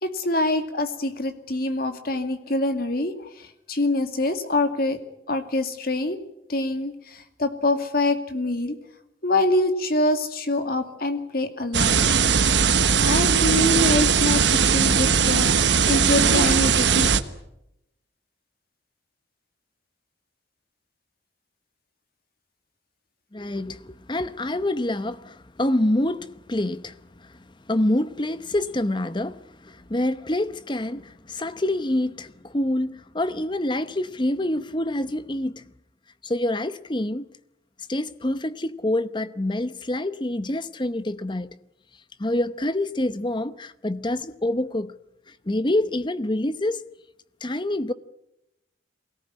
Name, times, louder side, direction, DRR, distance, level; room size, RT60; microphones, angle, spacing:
voice 1, 0.0-5.0 5.3-6.2 6.5-8.8 9.2-12.0 13.0-17.1, left 2 dB, 50° left, 2.3 m, -25 dB
sound 1, 11.7-17.2, right 6 dB, 70° right, 1.2 m, -19 dB
voice 2, 23.3-27.3 27.7-35.6 36.2-37.2 37.9-41.6 42.2-44.9 45.3-46.8 47.4-47.9, left 1 dB, 25° left, 0.8 m, -26 dB
23.5 x 18.0 x 10.0 m
head